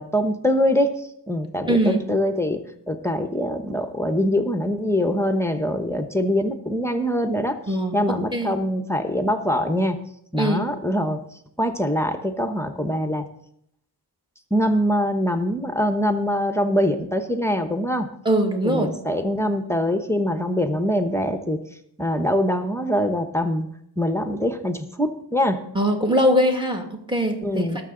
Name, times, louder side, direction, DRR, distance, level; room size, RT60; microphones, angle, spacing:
voice 1, 0.0-2.6 2.9-7.6 7.9-10.0 10.3-11.2 11.6-13.3 14.5-18.1 18.6-21.6 22.0-23.6 24.0-25.6 27.4-27.8, equal, 5° left, 7 dB, 0.9 m, -23 dB
voice 2, 1.7-2.0 7.7-8.0 8.3-8.5 10.4-10.6 18.3-18.9 25.7-27.6, equal, 10° right, 3 dB, 2.0 m, -21 dB
20.0 x 6.8 x 3.8 m, 0.73 s
wide cardioid pair, 85°, 40 cm